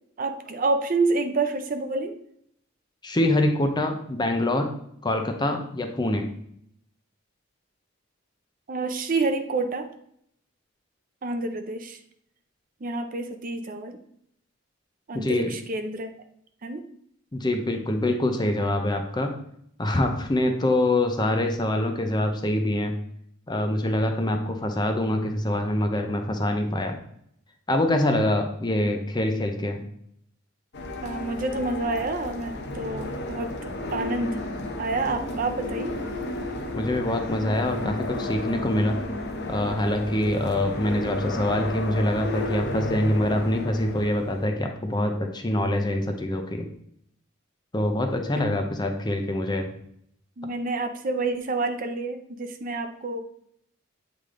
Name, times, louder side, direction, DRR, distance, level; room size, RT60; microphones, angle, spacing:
voice 1, 0.2-2.2 8.7-9.9 11.2-12.0 12.8-14.0 15.1-16.1 16.6-16.8 31.0-33.5 33.9-34.4 34.8-36.0 48.4-48.5 50.4-53.2, right 3 dB, 40° right, 7 dB, 0.5 m, -28 dB
voice 2, 3.0-4.7 5.0-6.3 15.1-15.5 17.3-19.3 19.8-22.9 23.5-27.0 27.7-29.8 36.7-38.9 39.5-46.7 47.7-49.7, left 1 dB, 20° left, 4 dB, 0.6 m, -25 dB
sound 1, 30.7-44.5, left 2 dB, 55° left, 0.8 m, -33 dB
8.1 x 3.4 x 3.7 m, 0.70 s
head